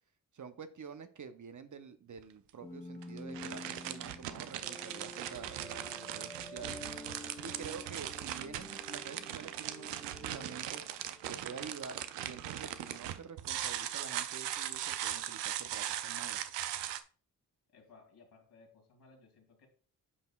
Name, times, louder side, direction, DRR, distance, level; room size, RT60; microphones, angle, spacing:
voice 1, 0.3-6.8 7.4-10.8 11.3-16.4, right 6 dB, 45° right, 10 dB, 0.8 m, -48 dB
sound 1, 2.2-2.3 3.0-17.0, right 12 dB, 80° right, 0.6 m, -39 dB
sound 2, 2.6-11.6, left 2 dB, 10° left, 0.6 m, -49 dB
voice 2, 17.7-19.7, left 4 dB, 65° left, 0 dB, 2.6 m, -60 dB
9.7 x 5.3 x 2.3 m, 0.42 s
supercardioid pair, 45°, 42 cm